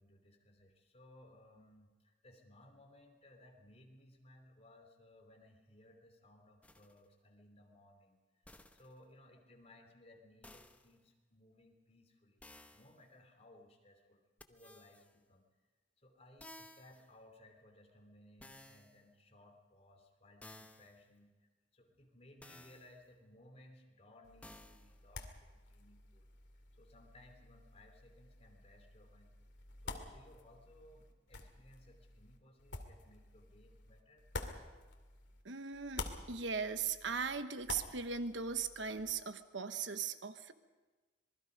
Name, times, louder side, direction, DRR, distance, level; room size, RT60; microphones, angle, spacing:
voice 1, 0.0-14.2 14.5-15.5 16.0-26.3 26.8-29.4 29.8-34.3, left 1 dB, 35° left, 3 dB, 3.2 m, -62 dB
sound 1, 6.6-7.0 8.4-9.0 10.4-10.9 12.4-13.0 14.4-15.1 16.4-17.1 18.4-19.0 20.4-21.0 22.4-23.0 24.4-25.0, left 1 dB, 10° left, 0.9 m, -57 dB
sound 2, 24.2-35.4 35.7-39.1, left 3 dB, 80° left, 2.3 m, -50 dB
voice 2, 35.4-40.5, right 5 dB, 90° right, 10 dB, 1.1 m, -39 dB
26.5 x 20.5 x 5.3 m, 1.3 s
head